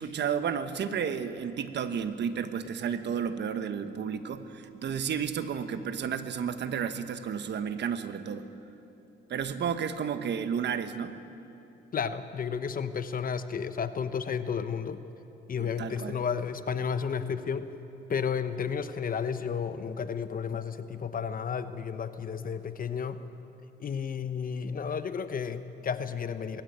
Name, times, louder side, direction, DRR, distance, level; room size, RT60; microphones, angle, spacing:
voice 1, 0.0-8.5 9.3-11.2 15.6-16.2, right 7 dB, 60° right, 10 dB, 1.2 m, -32 dB
voice 2, 11.9-15.0 15.5-17.7 18.1-23.2 23.8-26.6, left 6 dB, 45° left, 11 dB, 1.0 m, -32 dB
20.5 x 15.0 x 9.1 m, 2.9 s
cardioid pair, 90°, 20 cm